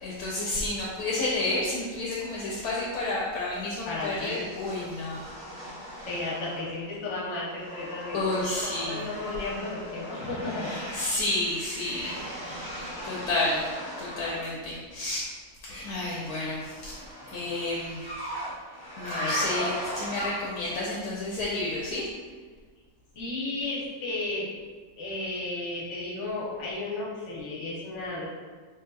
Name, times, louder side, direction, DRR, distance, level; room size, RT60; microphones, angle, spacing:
voice 1, 0.0-5.3 5.9-6.1 8.1-9.1 10.6-13.7 14.0-15.2 15.6-17.0 17.3-18.0 19.0-22.1, left 2 dB, 75° left, -5 dB, 1.1 m, -31 dB
voice 2, 3.8-4.4 6.1-11.1 19.2-19.4 23.1-24.5 25.0-28.3, left 2 dB, 55° left, -6 dB, 1.0 m, -34 dB
sound 1, 3.8-6.9 7.2-14.5 16.0-20.7, equal, 15° left, 0.8 m, -38 dB
3.5 x 2.8 x 2.2 m, 1.5 s
omnidirectional pair, 1.7 m